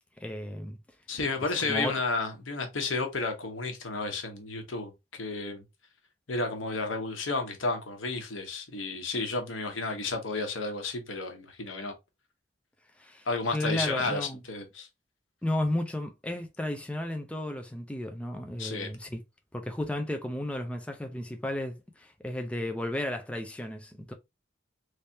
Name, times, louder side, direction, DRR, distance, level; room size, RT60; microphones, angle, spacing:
voice 1, 0.2-0.8 1.6-1.9 13.0-13.3 13.5-14.4 15.4-19.2 19.5-24.1, left 1 dB, 5° left, 0.4 m, -33 dB
voice 2, 1.1-5.6 6.3-11.9 13.3-14.9 18.6-18.9, left 3 dB, 90° left, 1.1 m, -32 dB
3.3 x 3.2 x 2.7 m
head